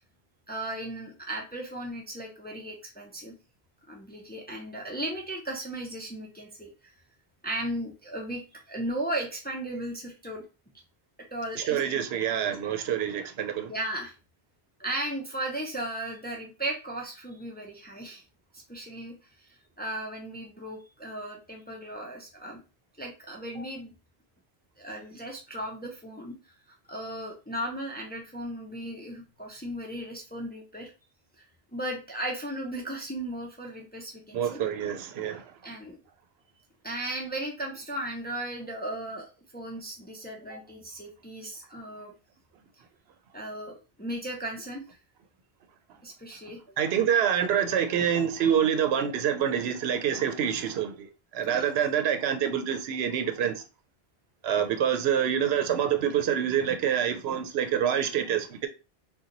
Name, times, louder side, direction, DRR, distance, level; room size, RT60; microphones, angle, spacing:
voice 1, 0.5-3.3 3.9-6.9 7.4-10.4 11.3-11.8 12.3-12.4 13.7-14.1 14.8-18.2 18.5-19.2 19.4-22.6 23.0-23.9 24.8-26.4 26.9-30.9 31.7-34.6 35.6-36.0 36.8-42.1 43.3-44.8 46.0-46.8 51.5-51.6, right 1 dB, 15° left, 0.5 m, -36 dB
voice 2, 11.6-13.7 34.3-35.5 46.8-53.6 54.4-58.7, right 8 dB, 85° right, 0.8 m, -26 dB
2.8 x 2.2 x 3.8 m
omnidirectional pair, 1.0 m